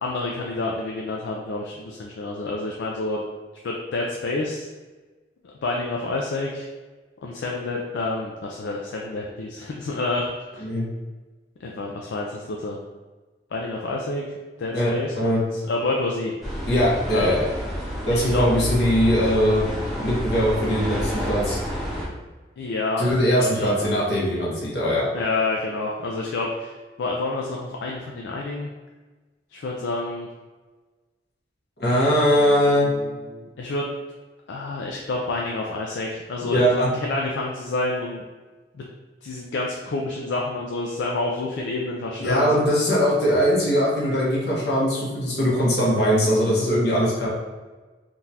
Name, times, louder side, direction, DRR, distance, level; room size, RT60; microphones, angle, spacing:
voice 1, 0.0-3.3 3.6-4.7 5.6-6.7 7.2-10.3 10.5-10.6 11.6-12.8 13.5-14.2 14.6-16.3 17.1-17.3 18.1-18.5 22.6-23.9 25.1-28.7 29.5-30.3 32.4-33.9 34.5-38.2 38.7-38.8 39.2-42.5, left 2 dB, 80° left, -1 dB, 0.4 m, -28 dB
sound 1, 16.4-22.1, equal, ahead, 0.7 m, -29 dB
voice 2, 16.7-17.5 18.1-19.7 20.0-21.6 23.0-25.1 31.8-32.9 36.4-36.9 42.2-47.3, equal, 65° left, -6 dB, 1.1 m, -21 dB
3.7 x 2.4 x 2.8 m, 1.3 s
head